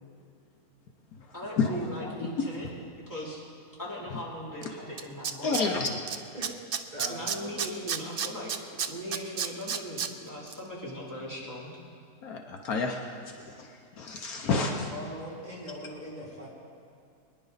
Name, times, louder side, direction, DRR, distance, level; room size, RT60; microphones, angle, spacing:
voice 1, 1.3-2.7 3.1-3.4 3.8-5.8 7.1-11.7, equal, 10° left, -7 dB, 3.0 m, -39 dB
Tools, 4.6-4.7 5.0-6.2 6.4-10.1 10.5-10.6, right 7 dB, 70° right, 0.5 m, -30 dB
voice 2, 5.4-6.0 12.2-13.0 13.5-13.7 14.0-14.9, left 4 dB, 65° left, 2 dB, 1.4 m, -29 dB
voice 3, 6.9-7.3 7.6-7.7 14.9-16.5, equal, 25° right, -6 dB, 3.2 m, -40 dB
22.5 x 10.5 x 4.0 m, 2.4 s
omnidirectional pair, 1.7 m